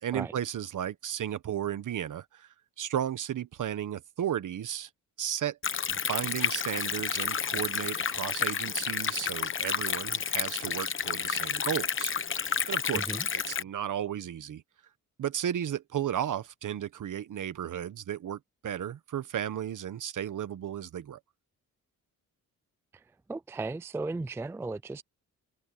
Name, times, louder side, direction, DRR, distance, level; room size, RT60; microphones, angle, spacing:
voice 1, 0.0-2.5 2.8-4.9 5.2-5.6 5.9-12.1 12.7-13.0 13.3-14.6 15.2-21.2, right 10 dB, 65° right, 1.4 m, -34 dB
Stream, 5.6-13.6, left 6 dB, 35° left, 1.0 m, -31 dB
voice 2, 12.9-13.3 22.9-23.0 23.3-25.0, right 3 dB, 10° right, 0.3 m, -35 dB
cardioid pair, 95°, 34 cm